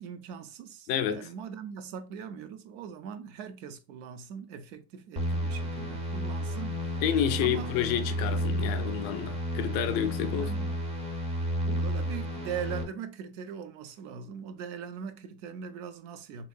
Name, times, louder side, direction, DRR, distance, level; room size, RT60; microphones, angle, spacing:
voice 1, 0.0-7.0 7.4-7.8 10.2-10.8 11.6-16.5, right 7 dB, 60° right, 0.6 m, -41 dB
voice 2, 0.9-1.3 7.0-10.5, left 9 dB, 40° left, 0.4 m, -29 dB
sound 1, 5.2-12.8, equal, 15° right, 0.5 m, -32 dB
3.6 x 2.9 x 2.5 m
supercardioid pair, 150°, 41 cm